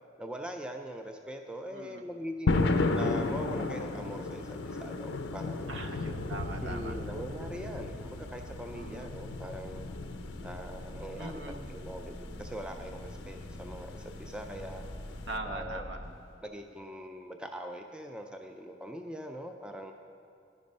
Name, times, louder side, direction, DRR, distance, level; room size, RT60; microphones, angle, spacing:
voice 1, 0.2-5.7 6.6-9.9 10.4-14.8 15.4-15.9 16.4-19.9, equal, 5° right, 4 dB, 0.3 m, -42 dB
voice 2, 1.7-2.0 5.7-6.9 8.7-9.1 11.2-11.6 15.3-16.0, right 2 dB, 70° right, 5 dB, 0.7 m, -41 dB
sound 1, 2.5-15.4, left 3 dB, 80° left, 0.5 m, -35 dB
sound 2, 6.0-16.3, left 1 dB, 45° right, 2.5 m, -46 dB
11.0 x 5.2 x 5.3 m, 2.4 s
head